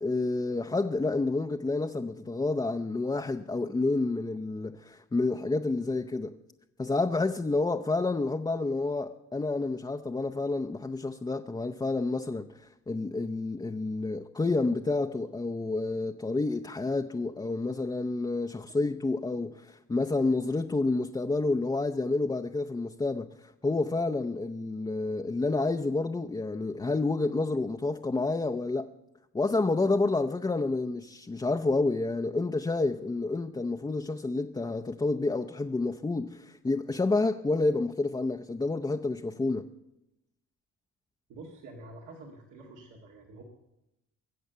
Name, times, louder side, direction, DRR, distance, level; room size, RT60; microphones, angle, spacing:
voice 1, 0.0-6.3 6.8-28.9 29.3-39.7, left 3 dB, 15° left, 0.6 m, -29 dB
voice 2, 41.3-43.4, right 2 dB, 85° right, 2.1 m, -47 dB
22.0 x 7.9 x 6.8 m
cardioid pair, 90°, 30 cm